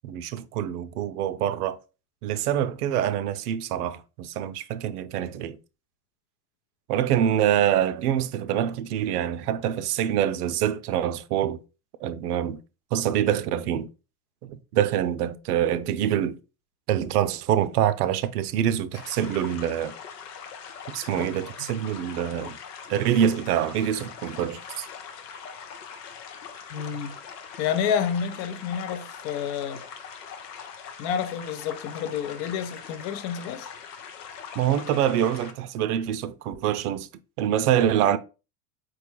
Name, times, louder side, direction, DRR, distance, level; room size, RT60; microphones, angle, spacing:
voice 1, 0.0-1.8 2.2-5.6 6.9-11.6 12.0-12.6 12.9-13.9 14.4-16.4 16.9-19.9 20.9-22.6 22.9-24.9 34.6-37.1 37.4-38.2, right 10 dB, 75° right, 0.5 m, -25 dB
sound 1, 18.9-35.5, left 7 dB, 85° left, 0.7 m, -42 dB
voice 2, 26.7-27.2 27.6-29.8 31.0-33.7, left 8 dB, 45° left, 0.6 m, -29 dB
4.5 x 2.3 x 3.0 m
hypercardioid pair, 95°, 47 cm